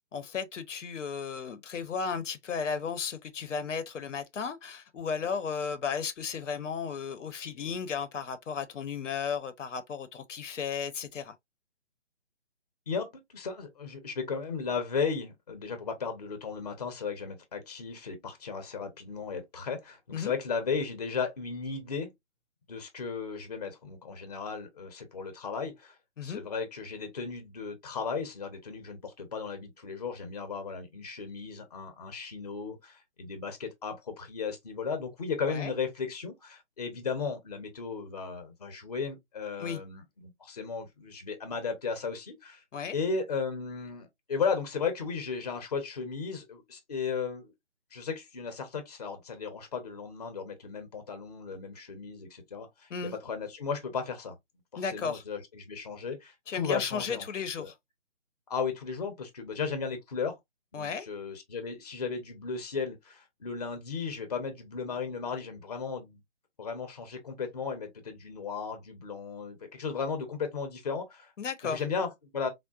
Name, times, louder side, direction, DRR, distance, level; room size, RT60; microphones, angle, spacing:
voice 1, 0.1-11.3 20.1-20.3 26.2-26.4 35.5-35.7 39.6-39.8 42.7-43.0 52.9-53.2 54.8-55.2 56.5-57.7 60.7-61.1 71.4-71.8, left 6 dB, 80° left, 0.7 m, -34 dB
voice 2, 13.3-22.1 22.7-25.9 26.2-42.6 42.9-47.5 47.9-52.7 53.0-54.3 54.7-57.2 57.6-57.7 58.5-60.4 60.7-66.2 66.6-71.3 71.6-72.5, left 5 dB, 35° left, 0.6 m, -35 dB
3.7 x 2.1 x 2.3 m
hypercardioid pair, 165°, 36 cm